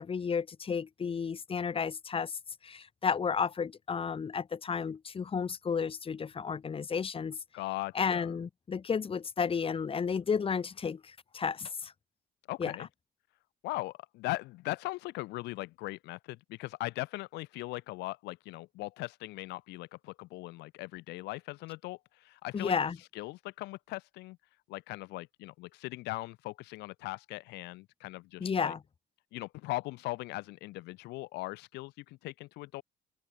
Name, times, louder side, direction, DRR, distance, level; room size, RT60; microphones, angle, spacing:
voice 1, 0.0-2.4 2.6-7.4 7.9-11.9 12.6-12.7 22.5-23.0 28.4-28.8, left 6 dB, 35° left, 2.8 m, -32 dB
voice 2, 7.5-8.4 12.5-12.9 13.6-22.7 23.1-24.4 24.7-28.7 29.3-32.8, left 20 dB, 90° left, 1.5 m, -39 dB
open air
cardioid pair, 110°, 17 cm